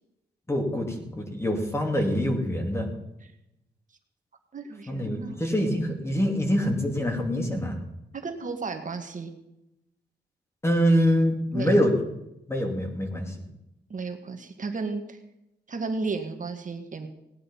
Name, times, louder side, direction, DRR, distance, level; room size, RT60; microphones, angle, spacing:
voice 1, 0.5-2.9 4.9-7.8 10.6-11.9 12.5-13.3, equal, 15° left, 2 dB, 2.7 m, -25 dB
voice 2, 4.5-5.4 8.1-9.3 11.5-11.8 13.9-15.2 15.7-17.1, right 4 dB, 45° right, 5 dB, 1.7 m, -33 dB
18.0 x 10.0 x 5.5 m, 0.88 s
wide cardioid pair, 125°, 18 cm